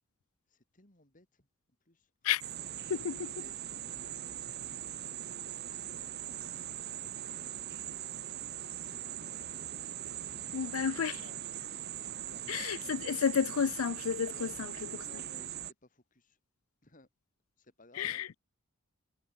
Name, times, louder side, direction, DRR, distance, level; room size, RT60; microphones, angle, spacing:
voice 1, 0.5-1.5 1.9-2.3 3.3-5.1 5.4-7.8 8.7-9.7 10.2-11.5 12.2-12.6 14.3-14.5 14.9-16.4 16.8-17.1 17.6-18.3, left 2 dB, 40° left, 3.5 m, -60 dB
sound 1, 2.4-15.7, right 11 dB, 50° right, 1.4 m, -41 dB
voice 2, 2.9-3.3 10.5-11.2 12.5-14.7 18.0-18.3, left 7 dB, 85° left, 0.5 m, -31 dB
head